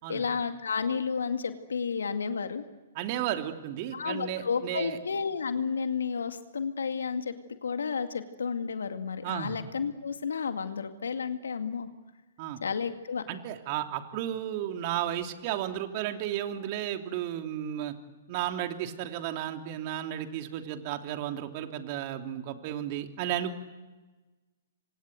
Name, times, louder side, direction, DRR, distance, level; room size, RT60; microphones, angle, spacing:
voice 1, 0.1-2.6 3.9-7.3 7.6-11.9 12.6-13.2, left 5 dB, 75° left, 7 dB, 2.2 m, -31 dB
voice 2, 2.9-5.0 9.2-9.6 12.4-12.6 13.3-17.9 18.3-23.6, right 11 dB, 40° right, 5 dB, 3.0 m, -33 dB
28.0 x 24.5 x 8.0 m, 1.2 s
figure-of-eight pair, 120°, 0 cm